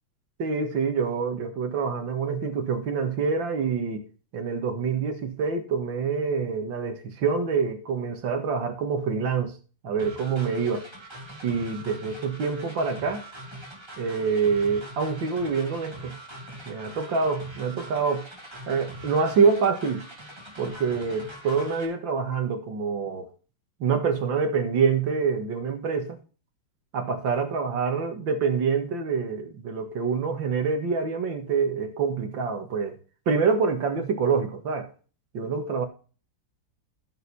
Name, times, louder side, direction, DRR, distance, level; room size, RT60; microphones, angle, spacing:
voice 1, 0.4-4.1 4.3-9.5 9.8-10.8 11.4-13.2 14.0-16.1 16.7-18.3 18.7-20.1 20.6-23.3 23.8-26.2 26.9-33.0 33.3-34.9 35.3-35.9, right 5 dB, 60° right, 2.3 m, -26 dB
sound 1, 10.0-21.8, right 1 dB, 10° right, 2.4 m, -43 dB
13.0 x 6.7 x 4.2 m
omnidirectional pair, 2.4 m